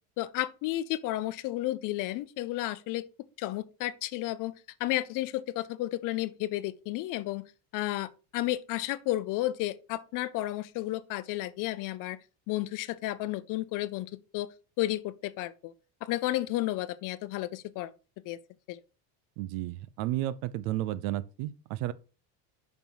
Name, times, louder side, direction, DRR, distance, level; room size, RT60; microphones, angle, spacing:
voice 1, 0.2-3.0 3.4-4.5 4.8-7.4 7.7-12.2 12.5-14.5 14.8-15.7 16.0-17.9 18.3-18.4 18.7-18.8, left 16 dB, 50° left, 0.6 m, -32 dB
voice 2, 19.4-21.9, right 15 dB, 75° right, 0.7 m, -32 dB
5.4 x 5.4 x 4.6 m
cardioid pair, 150°, 40 cm